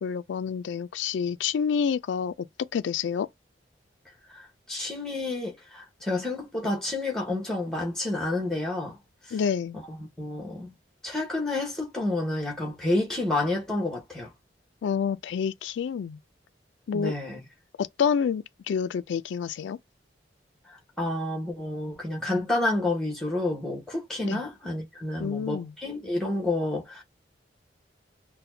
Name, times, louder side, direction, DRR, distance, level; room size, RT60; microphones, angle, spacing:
voice 1, 0.0-2.3 2.7-3.3 9.3-9.8 14.8-16.2 16.9-17.1 17.8-19.8 24.2-24.4 25.2-25.7, left 7 dB, 80° left, 0.3 m, -28 dB
voice 2, 4.7-9.0 9.9-10.7 11.0-14.3 16.9-17.4 21.0-27.0, left 2 dB, 5° left, 1.1 m, -29 dB
4.1 x 2.1 x 2.7 m
head